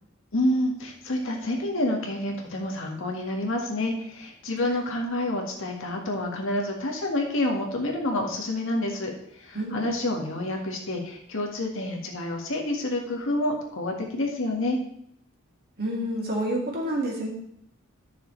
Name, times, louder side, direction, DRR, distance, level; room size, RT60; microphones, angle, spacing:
voice 1, 0.3-14.8, left 1 dB, 65° left, 1 dB, 1.9 m, -28 dB
voice 2, 9.5-10.0 15.8-17.3, right 1 dB, 45° right, -2 dB, 2.5 m, -29 dB
13.0 x 6.7 x 3.3 m, 0.70 s
head